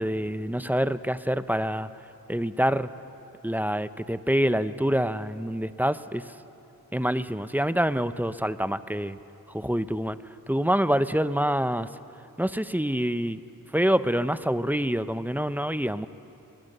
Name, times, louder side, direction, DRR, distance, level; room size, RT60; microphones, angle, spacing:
voice 1, 0.0-1.9 2.3-2.9 3.4-6.2 6.9-9.2 9.5-10.2 10.5-11.9 12.4-13.4 13.7-16.1, equal, 5° right, 12 dB, 0.8 m, -26 dB
25.5 x 21.0 x 6.8 m, 2.8 s
cardioid pair, 45°, 37 cm